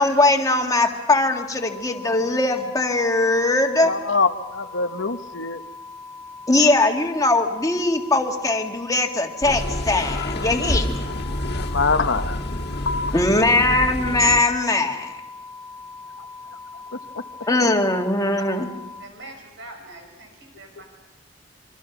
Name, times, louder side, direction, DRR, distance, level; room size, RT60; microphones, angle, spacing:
voice 1, 0.0-3.9 6.5-11.0 13.1-15.2 17.5-18.7, left 2 dB, 20° left, 2.0 m, -20 dB
sound 1, 1.6-19.1, left 3 dB, 25° right, 4.4 m, -41 dB
voice 2, 3.8-5.6 11.1-11.2 11.5-12.4 12.9-13.2 20.8-20.9, left 4 dB, 75° left, 1.1 m, -24 dB
sound 2, 9.4-14.4, left 1 dB, 60° left, 1.9 m, -28 dB
voice 3, 19.0-20.8, right 1 dB, 70° right, 6.3 m, -43 dB
26.5 x 24.5 x 6.1 m
head